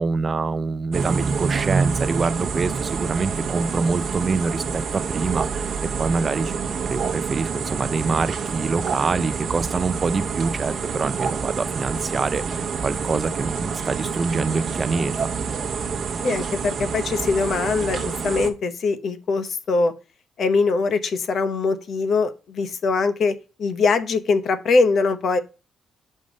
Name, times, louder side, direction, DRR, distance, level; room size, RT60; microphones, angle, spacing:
voice 1, 0.0-6.6 6.9-12.4 12.8-15.3, right 4 dB, 30° right, 0.5 m, -25 dB
sound 1, 0.9-18.5, right 5 dB, 50° right, 1.1 m, -27 dB
voice 2, 16.2-19.9 20.4-25.4, left 4 dB, 55° left, 0.9 m, -22 dB
5.4 x 5.0 x 5.2 m
cardioid pair, 120°, 0 cm